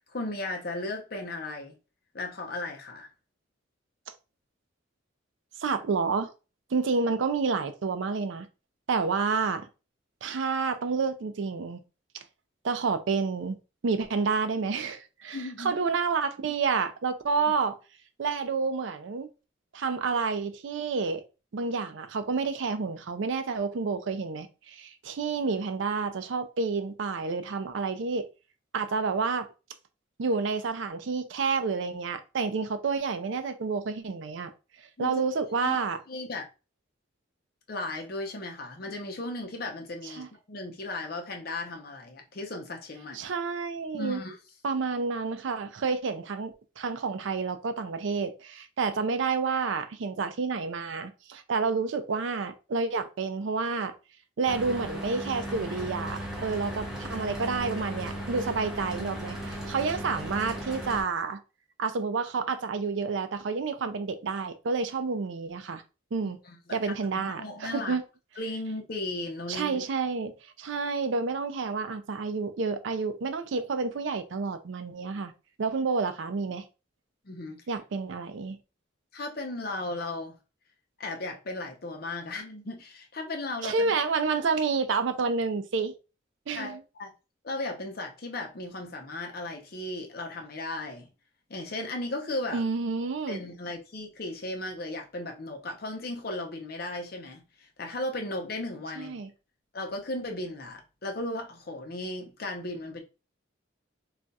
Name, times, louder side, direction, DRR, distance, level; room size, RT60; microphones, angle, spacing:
voice 1, 0.1-1.7 2.1-3.1 15.3-15.7 35.0-35.2 35.6-35.8 36.1-36.5 37.7-43.3 43.9-44.4 66.5-67.9 68.4-69.8 77.2-77.6 79.1-80.4 81.0-83.9 86.5-87.1 87.4-91.1 91.5-92.6 93.3-99.2 99.7-103.0, left 2 dB, 50° left, 0.6 m, -36 dB
voice 2, 5.6-6.3 6.7-8.5 8.9-9.7 10.2-11.8 12.6-13.6 13.8-17.7 18.2-19.3 19.7-21.2 21.5-28.2 28.7-29.5 30.2-34.5 34.8-36.0 40.0-40.3 43.1-44.2 44.6-53.9 54.4-61.4 61.8-65.8 66.1-66.4 66.7-68.0 69.5-75.3 75.6-76.7 77.7-78.6 83.6-85.9 86.5-86.8 92.5-93.4 99.0-99.3, right 4 dB, 70° right, 0.4 m, -29 dB
Mechanical fan, 54.5-61.0, right 1 dB, 5° right, 0.6 m, -36 dB
2.4 x 2.2 x 4.0 m
head